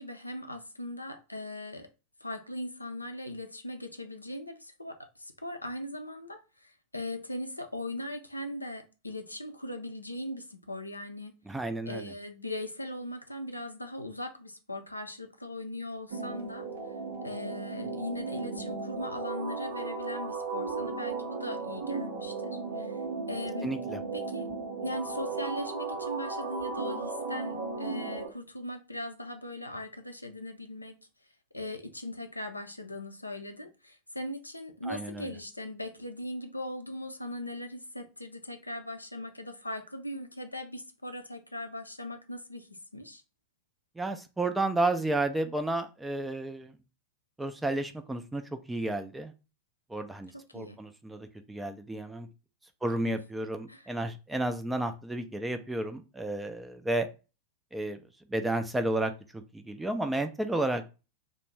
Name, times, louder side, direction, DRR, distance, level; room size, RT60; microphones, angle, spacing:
voice 1, 0.0-1.9 2.2-11.4 11.9-16.7 17.2-23.0 23.3-23.7 24.1-24.5 24.8-31.0 31.5-43.2 50.5-50.8 53.1-53.2 53.7-53.9, left 1 dB, 85° left, 0.4 m, -39 dB
voice 2, 11.5-12.0 23.6-24.0 34.9-35.3 44.0-46.8 47.4-48.4 48.7-49.3 49.9-52.3 52.8-57.1 57.7-58.0 58.3-60.8, right 2 dB, 5° right, 0.3 m, -32 dB
sound 1, 16.1-28.3, right 4 dB, 65° right, 0.5 m, -36 dB
2.4 x 2.0 x 3.1 m
figure-of-eight pair, 90°, 0 cm